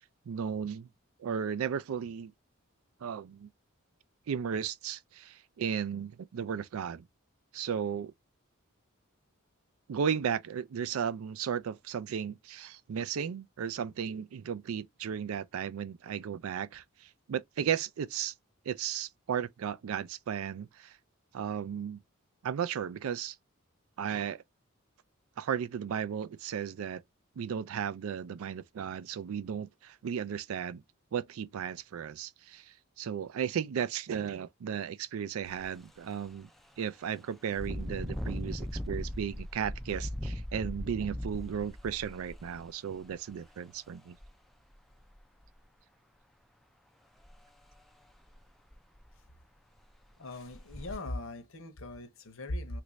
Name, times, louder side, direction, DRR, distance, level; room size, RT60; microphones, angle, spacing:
voice 1, 0.3-0.9 1.2-2.3 3.0-3.5 4.3-7.0 7.5-8.1 9.9-18.3 18.7-21.0 21.3-22.0 22.4-23.4 24.0-24.4 25.4-27.0 27.4-30.8 31.1-36.5 36.8-44.2, right 8 dB, 75° right, 0.4 m, -35 dB
Engine, 35.4-35.6 36.1-36.3 37.5-43.3 44.2-44.3 44.7-45.4 47.2-47.4 47.7-47.8 48.3-48.4 48.7-49.2 49.8-49.9 50.5-50.9, equal, ahead, 0.3 m, -39 dB
voice 2, 50.2-52.8, left 1 dB, 65° left, 0.8 m, -39 dB
3.1 x 2.5 x 3.1 m
head